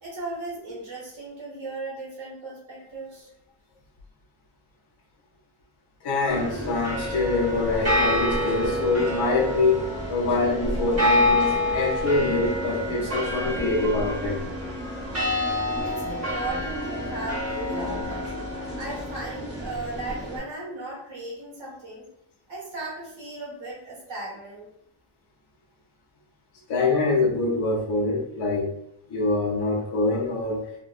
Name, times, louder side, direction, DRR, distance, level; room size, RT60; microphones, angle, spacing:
voice 1, 0.0-3.3 15.8-18.2 18.7-22.1 22.5-24.7, right 2 dB, 75° right, -5 dB, 1.4 m, -36 dB
voice 2, 6.0-14.4 26.7-28.7 29.1-30.7, left 3 dB, 60° left, -2 dB, 0.6 m, -25 dB
sound 1, 6.3-20.4, left 1 dB, 30° right, 0.8 m, -27 dB
3.0 x 2.0 x 2.4 m, 0.73 s
wide cardioid pair, 155°, 47 cm